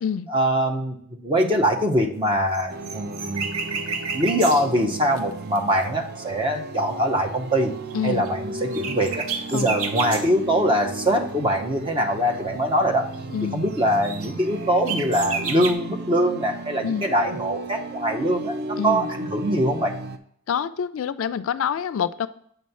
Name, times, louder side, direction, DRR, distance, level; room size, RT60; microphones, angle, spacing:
voice 1, 0.3-3.5 4.1-7.7 8.0-13.1 13.4-20.0, equal, 25° right, 2 dB, 0.9 m, -23 dB
sound 1, 2.3-6.1 7.9-8.0 8.3-8.4 8.7-10.3 10.9-12.7 12.9-13.2 13.4-13.5 13.7-15.7, right 5 dB, 80° right, 0.8 m, -32 dB
sound 2, 2.7-20.2, right 2 dB, 50° right, 0.5 m, -35 dB
voice 2, 7.9-8.2 9.5-9.8 13.3-13.6 16.8-17.1 18.8-19.1 20.5-22.3, left 7 dB, 65° left, 14 dB, 0.3 m, -26 dB
7.9 x 3.2 x 5.4 m, 0.66 s
head